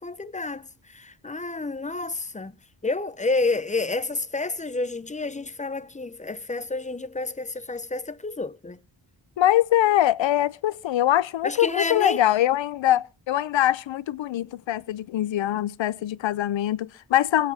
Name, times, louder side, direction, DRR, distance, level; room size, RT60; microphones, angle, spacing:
voice 1, 0.0-2.6 2.8-8.8 11.4-12.2, left 3 dB, 15° left, 0.7 m, -29 dB
voice 2, 9.4-17.5, left 13 dB, 80° left, 0.6 m, -23 dB
24.5 x 8.5 x 2.8 m
cardioid pair, 75°, 45 cm